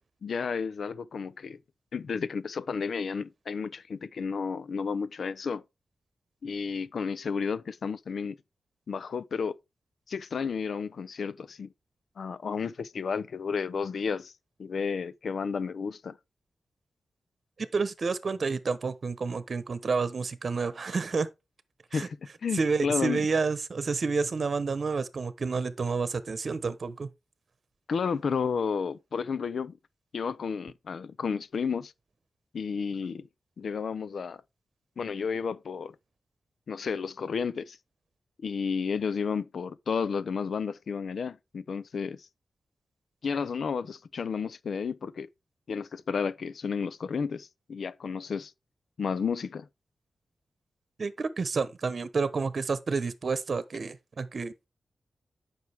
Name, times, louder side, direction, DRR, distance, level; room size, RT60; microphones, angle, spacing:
voice 1, 0.2-1.6 1.9-5.6 6.4-8.4 8.9-9.6 10.1-11.7 12.2-14.3 14.6-16.2 21.9-22.2 22.4-23.2 27.9-29.8 30.1-31.9 32.5-33.3 33.6-34.4 35.0-35.9 36.7-37.8 38.4-42.3 43.2-45.3 45.7-48.5 49.0-49.7, left 5 dB, 75° left, 0.6 m, -32 dB
voice 2, 17.6-21.3 21.9-22.1 22.5-27.1 51.0-54.7, right 4 dB, 60° right, 1.0 m, -29 dB
9.5 x 6.1 x 3.5 m
cardioid pair, 70°, 0 cm